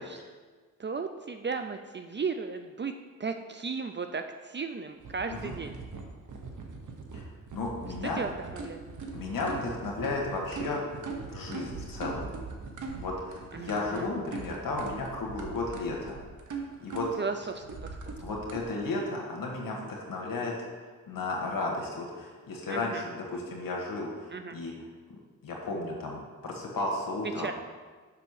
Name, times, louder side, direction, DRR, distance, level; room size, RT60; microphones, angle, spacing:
voice 1, 0.8-2.9 3.2-5.8 8.2-8.8 13.5-14.1 17.2-17.6 22.7-23.0 24.3-24.6 27.4-27.5, right 5 dB, 35° right, 7 dB, 0.5 m, -35 dB
sound 1, 5.0-18.6, right 4 dB, 60° right, 1.3 m, -41 dB
voice 2, 7.5-8.2 9.1-10.8 11.3-12.2 13.0-16.2 16.8-17.1 18.2-20.5 21.1-24.7 25.4-27.5, left 2 dB, 75° left, -1 dB, 1.7 m, -34 dB
6.8 x 5.9 x 6.5 m, 1.4 s
cardioid pair, 85°, 34 cm